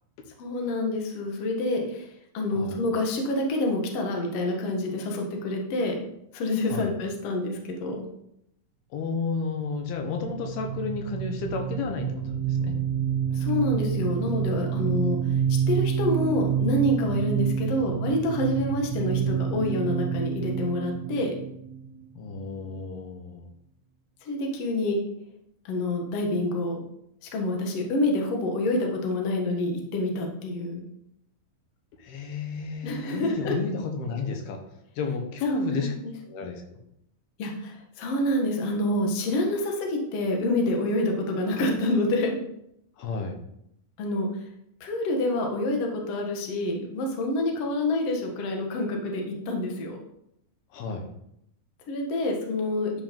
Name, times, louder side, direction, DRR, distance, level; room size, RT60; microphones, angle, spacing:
voice 1, 0.4-2.1 2.3-6.0 6.3-8.0 13.3-15.4 15.7-21.4 24.2-25.0 25.7-26.8 27.3-30.8 32.8-33.6 35.5-36.1 37.4-42.4 44.0-44.3 44.8-50.0 51.9-52.9, left 1 dB, 50° left, 1 dB, 2.2 m, -27 dB
voice 2, 8.9-12.8 15.1-15.4 22.2-23.5 32.0-34.6 35.0-35.9 36.3-36.6 43.0-43.4 50.7-51.1, left 4 dB, 80° left, 3 dB, 3.2 m, -32 dB
sound 1, 10.0-22.5, right 8 dB, 80° right, 2.4 m, -28 dB
11.0 x 5.3 x 5.3 m, 0.77 s
omnidirectional pair, 4.4 m